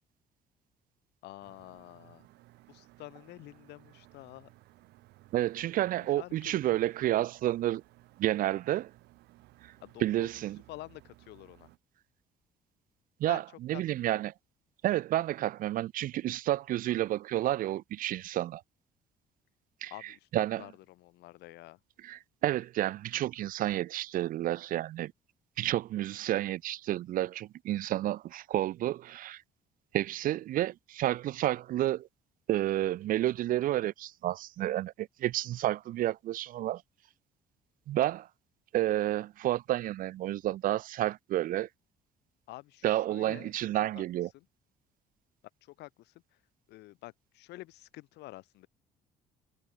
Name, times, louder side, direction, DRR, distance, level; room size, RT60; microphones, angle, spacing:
voice 1, 1.2-2.3 2.7-4.5 6.2-6.6 9.8-10.3 10.7-11.7 13.2-13.4 13.7-14.1 19.9-21.8 42.5-43.5 43.9-44.0 44.3-44.5 45.6-46.4 46.7-48.7, left 18 dB, 85° left, 4.3 m, -48 dB
sound 1, 1.4-11.8, right 18 dB, 85° right, 2.3 m, -59 dB
voice 2, 5.3-7.8 8.2-8.9 9.6-9.7 10.0-10.6 13.2-13.4 13.7-14.3 14.8-18.6 19.8-19.9 20.3-20.6 22.0-25.1 25.6-29.4 29.9-32.1 32.5-36.8 37.9-38.3 38.7-41.7 42.8-44.3, right 14 dB, 55° right, 0.4 m, -30 dB
cardioid pair, 110°, 17 cm